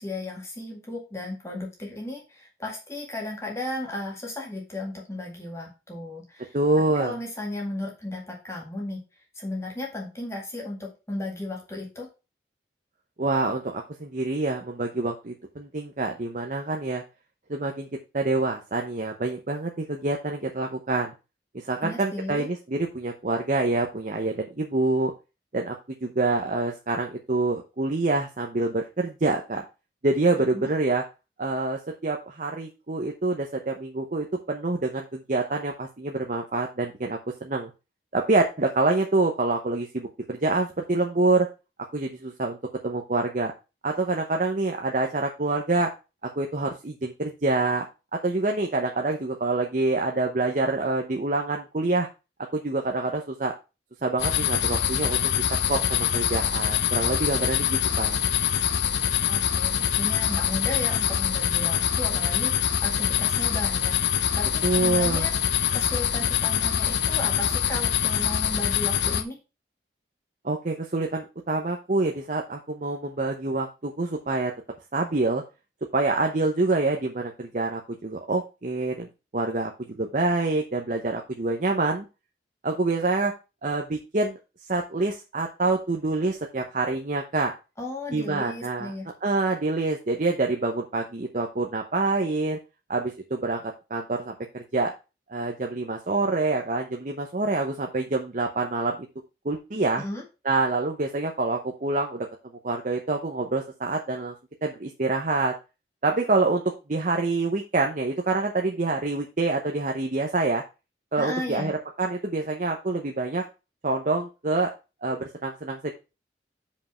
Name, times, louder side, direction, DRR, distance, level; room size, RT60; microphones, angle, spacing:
voice 1, 0.0-6.6 7.0-9.0 9.4-12.1 21.8-22.5 30.5-30.7 59.3-65.3 65.7-69.4 87.8-89.1 100.0-100.2 111.2-111.7, left 1 dB, 15° left, -2 dB, 2.0 m, -35 dB
voice 2, 6.5-7.2 13.2-17.0 17.5-17.9 18.1-21.1 21.5-25.1 25.5-25.7 26.0-29.6 30.0-31.0 31.4-37.7 38.1-41.5 41.9-42.6 42.8-43.5 43.8-45.9 46.2-47.8 48.1-52.1 52.5-53.5 54.0-58.2 64.6-65.3 70.4-74.5 74.9-75.4 75.9-79.1 79.3-79.7 80.0-82.1 82.6-83.3 83.6-84.4 84.7-87.5 88.1-88.9 89.2-92.6 92.9-93.6 93.9-94.9 95.3-99.0 99.4-100.0 100.4-102.3 102.6-104.3 104.6-105.5 106.0-106.6 106.9-110.6 111.1-111.7 112.0-113.4 113.8-114.7 115.0-115.9, right 2 dB, 45° right, 2 dB, 0.8 m, -26 dB
sound 1, 54.2-69.2, left 9 dB, 85° left, 0.7 m, -24 dB
5.4 x 5.2 x 5.6 m, 0.29 s
head